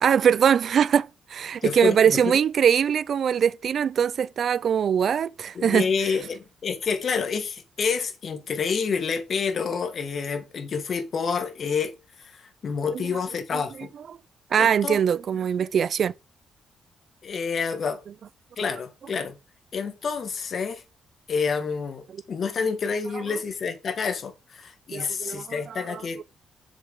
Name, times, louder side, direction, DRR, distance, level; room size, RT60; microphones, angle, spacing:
voice 1, 0.0-5.9 12.9-13.0 14.5-16.1 24.9-26.0, right 8 dB, 55° right, 0.4 m, -22 dB
voice 2, 1.6-2.4 5.5-13.9 14.6-15.0 17.2-18.0 18.6-19.4 19.7-20.8 21.3-26.2, left 5 dB, 50° left, 1.7 m, -28 dB
7.1 x 6.6 x 3.7 m
cardioid pair, 110°, 0 cm